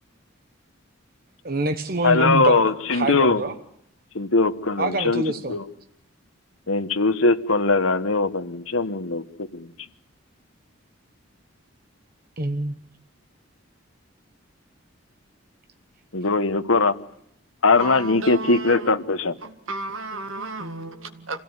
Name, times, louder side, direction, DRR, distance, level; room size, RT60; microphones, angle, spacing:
voice 1, 1.4-2.6 2.9-3.5 4.8-5.6 12.4-12.8, right 1 dB, 45° right, 1.1 m, -25 dB
voice 2, 2.0-3.4 4.1-5.2 5.5-5.6 6.7-9.7 16.1-16.9 17.6-19.4, left 3 dB, 80° left, 1.4 m, -21 dB
voice 3, 17.8-21.4, right 2 dB, 75° right, 2.0 m, -34 dB
26.5 x 17.0 x 9.7 m
head